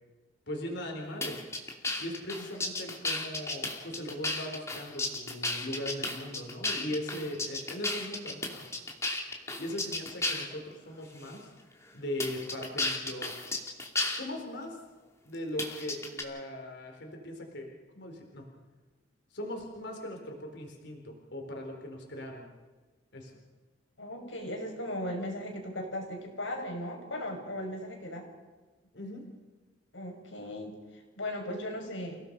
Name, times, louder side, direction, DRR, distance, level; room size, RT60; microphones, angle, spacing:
voice 1, 0.5-1.4 2.0-8.7 9.6-11.5 11.9-13.3 14.1-14.8 15.2-18.5 19.3-22.5 23.1-23.4 28.9-29.2, left 1 dB, 65° left, 2 dB, 4.3 m, -39 dB
sound 1, 1.2-10.5 11.2-11.3 12.2-14.2 15.6-16.2, left 2 dB, 15° left, 2.8 m, -33 dB
voice 2, 24.0-28.3 29.9-32.2, left 1 dB, 85° left, 2 dB, 5.9 m, -37 dB
30.0 x 17.5 x 5.5 m, 1.3 s
head